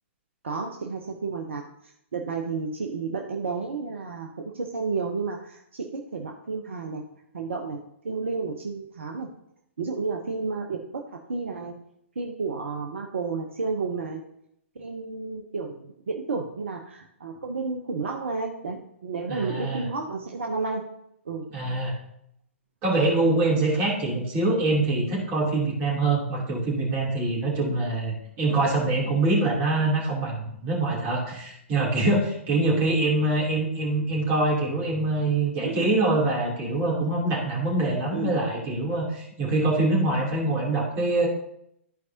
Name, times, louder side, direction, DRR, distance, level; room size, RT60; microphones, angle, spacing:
voice 1, 0.4-7.0 7.3-9.3 9.8-11.0 11.3-11.7 12.2-14.2 14.7-20.8 21.2-21.4 35.6-35.9 38.1-38.4, right 4 dB, 65° right, 2 dB, 0.9 m, -31 dB
voice 2, 19.3-19.8 21.5-21.9 22.8-41.3, right 2 dB, 30° right, -3 dB, 2.9 m, -24 dB
14.0 x 4.7 x 2.8 m, 0.77 s
figure-of-eight pair, 115°, 7 cm